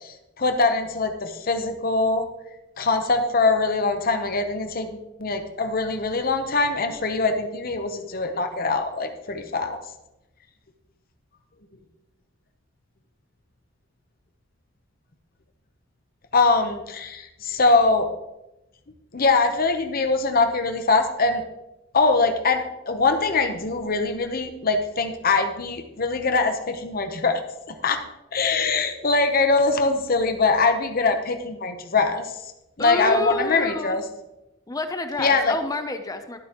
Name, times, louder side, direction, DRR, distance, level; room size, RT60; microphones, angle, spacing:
voice 1, 0.0-2.3 2.8-9.8 16.3-18.1 19.1-21.4 21.9-27.4 27.7-28.0 28.3-32.3 32.8-34.0 35.2-35.6, left 3 dB, 50° left, 6 dB, 0.9 m, -22 dB
voice 2, 32.8-34.0 34.7-36.4, left 2 dB, 20° left, 7 dB, 0.6 m, -29 dB
12.0 x 8.2 x 3.0 m, 0.93 s
head